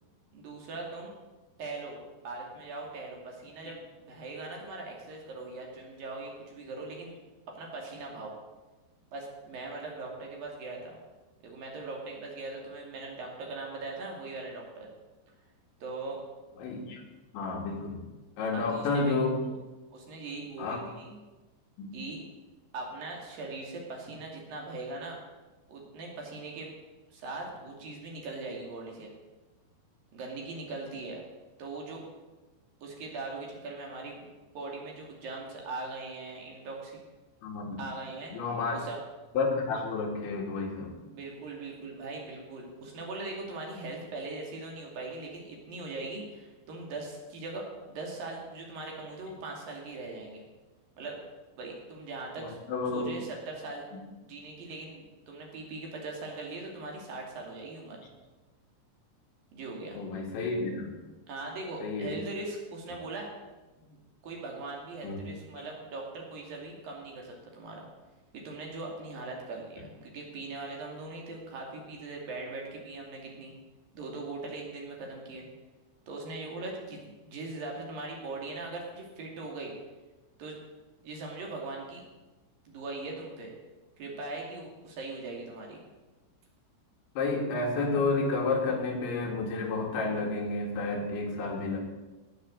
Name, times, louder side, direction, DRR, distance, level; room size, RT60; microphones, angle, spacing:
voice 1, 0.3-1.1 1.6-2.0 2.2-7.2 7.5-8.3 9.1-11.0 11.4-14.9 15.8-16.2 18.5-19.1 19.9-21.2 21.9-22.2 22.7-25.2 25.7-26.7 27.1-29.1 30.1-31.2 31.6-32.0 32.8-34.3 34.5-37.0 37.8-38.4 38.7-39.0 41.1-50.4 51.0-51.2 51.6-52.6 52.9-53.9 54.2-58.0 59.5-60.0 61.3-63.3 63.8-67.9 68.3-73.5 73.9-75.5 76.1-77.0 77.2-79.7 80.4-80.6 81.0-82.0 82.7-83.5 84.0-85.8, right 3 dB, 55° right, -1 dB, 4.0 m, -40 dB
voice 2, 16.6-17.0 17.3-18.1 18.4-19.4 20.6-20.9 21.8-21.9 37.4-37.8 38.3-38.8 39.3-40.9 52.4-53.1 59.9-61.0 61.8-62.1 65.0-65.2 65.6-65.7 87.2-91.8, left 3 dB, 80° left, 1 dB, 4.5 m, -30 dB
18.0 x 7.5 x 7.7 m, 1.2 s
omnidirectional pair, 5.2 m